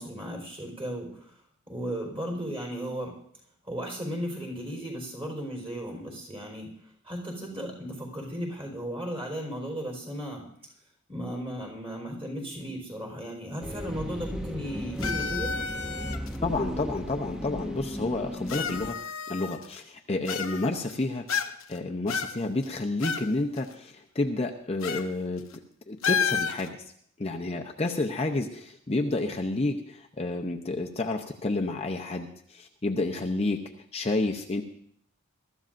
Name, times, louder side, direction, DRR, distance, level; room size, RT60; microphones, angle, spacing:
voice 1, 0.0-3.1 3.6-10.5 11.1-15.6, equal, 25° right, -1 dB, 4.3 m, -36 dB
sound 1, 13.6-18.9, equal, 5° right, 0.7 m, -35 dB
sound 2, 15.0-16.4 17.3-17.4 18.5-19.8 20.2-20.9 21.3-21.8 22.1-23.3 23.6-23.7 24.8-25.1 25.4-25.5 26.0-26.7, left 6 dB, 70° left, 0.8 m, -31 dB
voice 2, 16.4-19.0 19.3-21.3 21.7-25.4 25.9-26.9 27.2-33.6 33.9-34.6, left 2 dB, 30° left, 2 dB, 0.7 m, -30 dB
22.5 x 13.5 x 2.6 m, 0.65 s
head